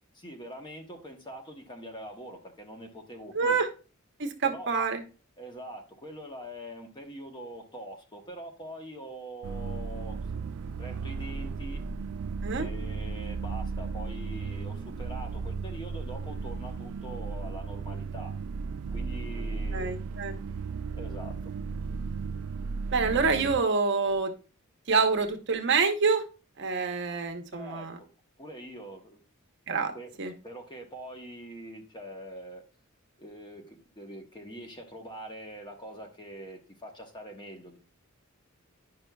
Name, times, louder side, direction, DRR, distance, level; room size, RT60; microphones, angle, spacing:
voice 1, 0.1-3.6 4.4-4.7 5.4-10.2 10.8-11.8 12.5-18.3 18.9-19.9 20.9-21.4 27.5-28.1 28.4-29.2 29.9-32.6 33.2-37.8, right 1 dB, 20° left, 3 dB, 1.0 m, -43 dB
voice 2, 3.3-3.7 4.2-5.0 12.4-12.7 19.7-20.3 22.9-24.3 24.9-26.2 26.6-27.9 29.7-29.9 30.2-30.3, right 4 dB, 55° right, 5 dB, 0.8 m, -26 dB
sound 1, 9.4-23.6, right 4 dB, 85° right, 0.3 m, -35 dB
sound 2, 10.6-16.9, equal, 50° left, 1.9 m, -45 dB
10.5 x 5.2 x 2.3 m, 0.36 s
head